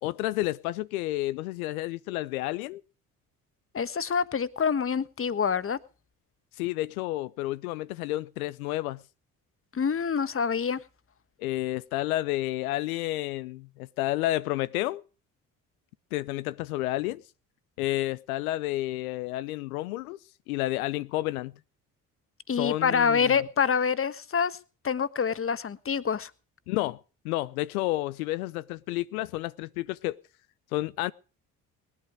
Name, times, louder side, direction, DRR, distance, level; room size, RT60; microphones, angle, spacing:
voice 1, 0.0-2.8 6.5-9.0 11.4-15.0 16.1-17.2 17.8-20.2 20.5-21.5 22.5-23.4 26.7-30.2 30.7-31.1, left 17 dB, 80° left, 0.7 m, -30 dB
voice 2, 3.7-5.8 9.7-10.8 22.5-24.6 24.8-26.3, left 6 dB, 30° left, 1.3 m, -26 dB
20.5 x 12.0 x 4.9 m
hypercardioid pair, 50°, 42 cm